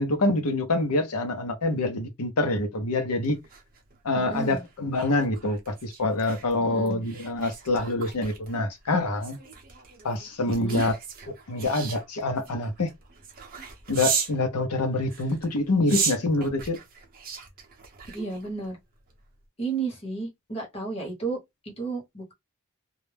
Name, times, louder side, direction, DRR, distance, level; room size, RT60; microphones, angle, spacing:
voice 1, 0.0-3.4 4.0-9.4 10.0-10.9 11.5-12.9 13.9-16.8, left 2 dB, 80° left, 0.7 m, -26 dB
sound 1, 3.2-14.4 15.0-18.7 19.1-19.3, right 6 dB, 40° right, 0.6 m, -36 dB
voice 2, 4.1-4.6 6.6-7.0 10.5-10.8 18.1-18.8 19.6-21.4 21.6-22.3, right 4 dB, 25° left, 1.0 m, -32 dB
2.3 x 2.0 x 3.2 m
head